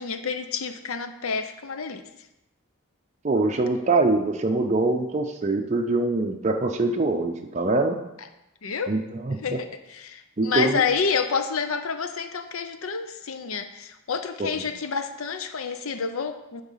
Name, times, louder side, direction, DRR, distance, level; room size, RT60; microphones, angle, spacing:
voice 1, 0.0-2.0 8.6-9.0 9.4-16.6, left 5 dB, 75° left, 8 dB, 0.7 m, -29 dB
voice 2, 3.2-8.0 8.9-9.6 10.4-10.8 14.4-14.5, right 2 dB, 30° right, 3 dB, 0.5 m, -24 dB
10.0 x 3.9 x 5.6 m, 0.92 s
head